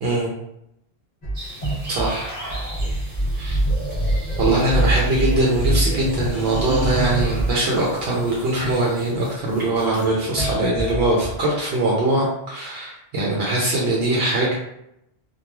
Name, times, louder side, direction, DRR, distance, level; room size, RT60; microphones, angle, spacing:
voice 1, 0.0-0.3 1.9-2.3 3.3-3.6 4.4-14.5, right 2 dB, 75° right, -4 dB, 0.8 m, -22 dB
sound 1, 1.2-8.3 8.6-11.4, right 1 dB, 45° left, 0.9 m, -25 dB
sound 2, 1.3-9.1, right 1 dB, 40° right, 1.0 m, -37 dB
sound 3, 2.0-2.9 4.4-5.1 6.3-7.2 8.5-8.9 9.8-10.6, equal, 15° left, 0.8 m, -36 dB
3.0 x 2.2 x 2.2 m, 0.81 s
omnidirectional pair, 1.1 m